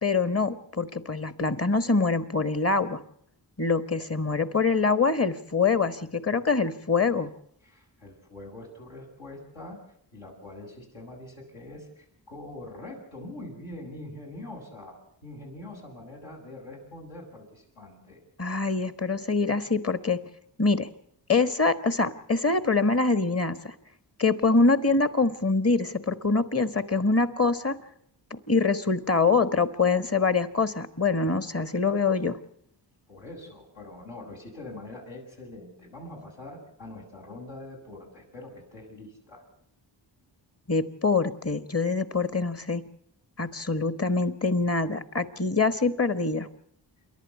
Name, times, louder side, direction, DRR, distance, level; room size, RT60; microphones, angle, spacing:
voice 1, 0.0-3.0 3.6-7.3 18.4-20.2 20.6-20.9 21.3-23.7 24.2-27.8 28.3-32.4 40.7-42.8 43.4-46.5, left 4 dB, 30° left, 12 dB, 1.4 m, -24 dB
voice 2, 7.6-9.8 10.1-18.2 33.1-39.4, left 1 dB, 80° left, -2 dB, 7.6 m, -43 dB
28.0 x 11.5 x 8.3 m, 0.70 s
cardioid pair, 60°, 45 cm